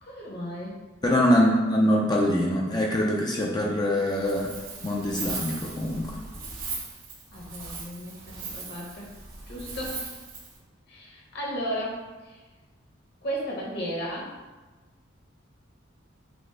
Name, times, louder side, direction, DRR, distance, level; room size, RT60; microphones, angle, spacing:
voice 1, 0.0-0.7 1.2-1.6 7.3-9.1 9.5-10.1 10.9-12.4 13.2-14.3, equal, 55° left, -3 dB, 1.1 m, -35 dB
voice 2, 1.0-4.5 4.8-6.2, left 1 dB, 20° left, -2 dB, 0.4 m, -23 dB
Wind, 4.1-10.6, right 4 dB, 85° right, 1.4 m, -38 dB
6.0 x 2.0 x 3.3 m, 1.2 s
head